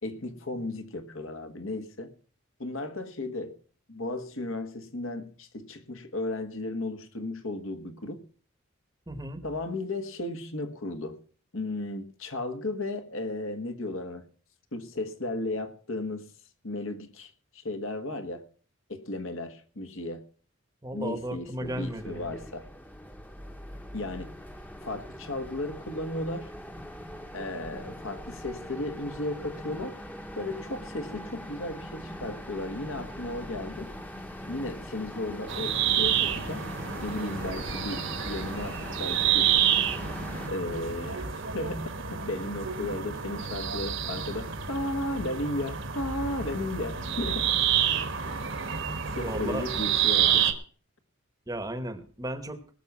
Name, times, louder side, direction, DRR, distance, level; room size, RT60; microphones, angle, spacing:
voice 1, 0.0-2.1 2.6-3.6 3.9-8.3 9.4-11.2 11.5-14.3 14.7-16.3 16.6-18.5 18.9-20.2 20.9-22.7 23.9-24.3 24.8-26.5 27.3-30.0 30.4-33.9 34.5-36.7 37.0-39.5 40.5-47.5 49.1-50.4, left 2 dB, 70° left, 7 dB, 1.5 m, -35 dB
voice 2, 9.1-9.4 20.8-22.4 49.1-49.6 51.5-52.6, right 1 dB, 15° right, 9 dB, 1.0 m, -35 dB
sound 1, 21.6-40.5, equal, 10° left, 1.0 m, -41 dB
sound 2, 35.5-50.5, right 9 dB, 60° right, 1.3 m, -29 dB
19.5 x 6.8 x 5.9 m, 0.43 s
head